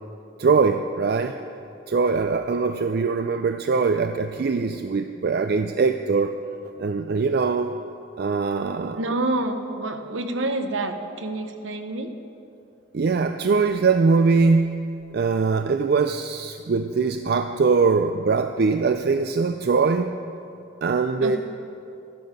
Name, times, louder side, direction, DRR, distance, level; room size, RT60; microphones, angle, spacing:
voice 1, 0.4-1.4 1.9-6.4 6.8-7.8 8.2-9.1 12.9-14.9 15.1-20.2 20.8-21.4, right 4 dB, 50° right, 8 dB, 0.4 m, -22 dB
voice 2, 8.9-12.1 21.2-21.4, right 2 dB, 75° right, 7 dB, 1.0 m, -28 dB
13.5 x 12.0 x 5.2 m, 2.6 s
head